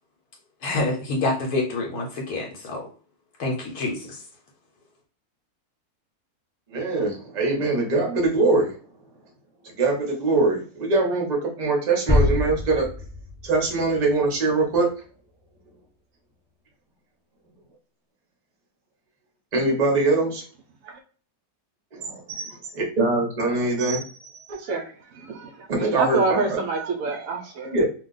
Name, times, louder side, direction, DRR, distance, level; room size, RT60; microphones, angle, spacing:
voice 1, 0.6-2.8 3.4-4.2, left 2 dB, 75° left, 0 dB, 1.2 m, -27 dB
voice 2, 6.7-8.8 9.6-12.9 13.4-14.9 19.5-20.4 21.9-24.6 25.7-26.6 27.7-27.8, right 3 dB, 35° right, 0 dB, 0.8 m, -23 dB
sound 1, 12.1-14.8, left 2 dB, 10° left, 0.8 m, -25 dB
voice 3, 24.5-27.7, right 3 dB, 70° right, 4 dB, 0.9 m, -27 dB
2.5 x 2.3 x 3.9 m, 0.42 s
omnidirectional pair, 1.7 m